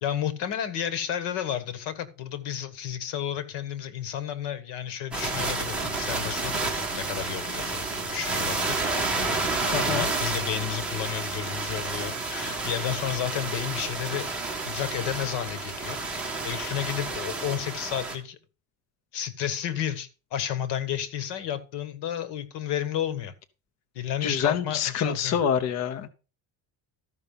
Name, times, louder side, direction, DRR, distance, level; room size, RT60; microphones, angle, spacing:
voice 1, 0.0-8.9 9.1-9.4 9.8-14.3 14.6-16.0 16.2-18.4 19.1-23.3 23.9-25.4, left 10 dB, 80° left, 1.5 m, -32 dB
sound 1, 5.1-18.2, right 3 dB, ahead, 1.9 m, -30 dB
voice 2, 9.7-10.1 24.2-26.1, left 8 dB, 40° left, 0.8 m, -26 dB
13.5 x 5.6 x 5.4 m
cardioid pair, 170°, 41 cm